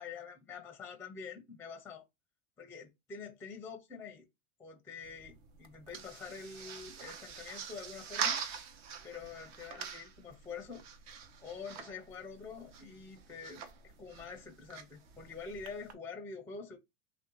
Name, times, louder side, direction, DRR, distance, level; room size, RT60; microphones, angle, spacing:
voice 1, 0.0-2.0 2.6-4.3 4.6-8.4 9.0-10.8 11.4-16.8, left 5 dB, 5° left, 0.5 m, -46 dB
sound 1, 5.0-15.9, right 7 dB, 60° right, 1.2 m, -44 dB
3.4 x 2.8 x 3.8 m
supercardioid pair, 130°, 42 cm